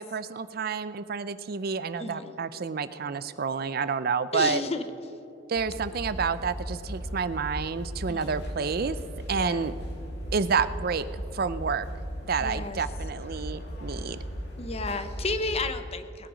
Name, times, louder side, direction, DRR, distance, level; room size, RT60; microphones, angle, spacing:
voice 1, 0.0-4.6 5.5-9.0 9.3-9.7 10.3-11.9 12.3-14.2, right 5 dB, 50° right, 14 dB, 0.5 m, -29 dB
voice 2, 2.0-2.3 4.3-4.8 8.1-8.4 9.3-9.7 12.4-12.8 14.6-16.3, left 3 dB, 35° left, 10 dB, 0.8 m, -32 dB
sound 1, 5.5-15.7, equal, 60° left, 2.4 m, -37 dB
19.5 x 9.9 x 5.1 m, 2.9 s
head